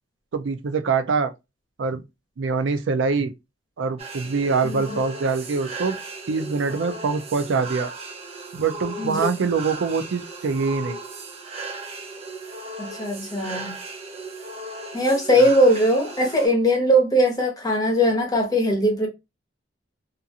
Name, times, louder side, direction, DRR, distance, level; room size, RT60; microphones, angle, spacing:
voice 1, 0.3-1.3 1.8-2.0 2.4-3.3 3.8-6.0 6.3-7.9 8.5-11.0, right 4 dB, 85° right, 0.4 m, -24 dB
sound 1, 4.0-16.5, right 3 dB, 35° right, 0.5 m, -36 dB
voice 2, 4.6-5.0 9.0-9.3 12.8-13.7 14.9-19.1, equal, 20° left, 1.0 m, -20 dB
2.6 x 2.4 x 2.6 m
head